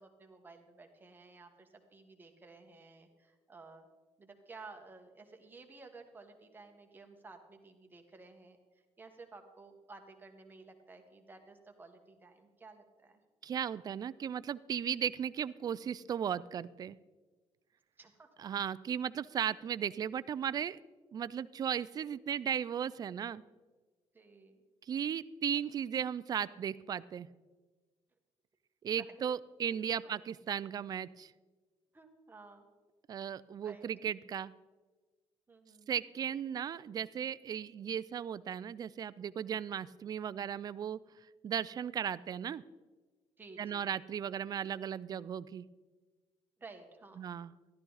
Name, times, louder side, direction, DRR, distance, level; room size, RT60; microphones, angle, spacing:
voice 1, 0.0-3.9 4.2-8.6 9.0-13.2 18.0-18.3 24.1-24.6 29.0-29.1 29.7-30.1 31.9-32.7 33.6-33.9 35.5-35.9 43.4-43.9 46.6-47.3, right 3 dB, 15° right, 4 dB, 1.3 m, -54 dB
voice 2, 13.4-17.0 18.4-20.8 21.1-23.4 24.9-27.3 28.8-31.3 33.1-34.5 35.9-41.0 41.4-42.6 43.6-45.6 47.2-47.5, right 8 dB, 35° right, 17 dB, 0.3 m, -36 dB
13.5 x 12.0 x 4.0 m, 1.3 s
cardioid pair, 155°, 11 cm